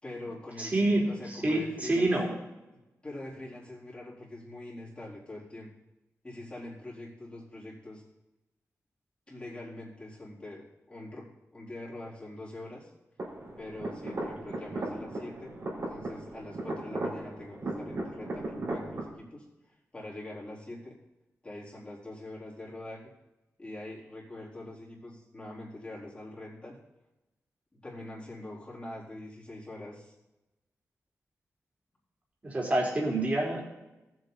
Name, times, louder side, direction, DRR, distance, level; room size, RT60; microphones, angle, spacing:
voice 1, 0.0-2.1 3.0-5.7 6.2-8.0 9.3-12.9 13.6-19.4 19.9-20.9 21.4-23.1 23.6-26.8 27.8-30.1, left 1 dB, 20° left, -6 dB, 4.0 m, -44 dB
voice 2, 0.6-2.3 32.4-33.6, right 2 dB, 25° right, -3 dB, 3.9 m, -27 dB
sound 1, 13.2-19.0, right 2 dB, 55° right, 4.2 m, -37 dB
18.5 x 7.9 x 4.1 m, 0.99 s
wide cardioid pair, 145°, 5 cm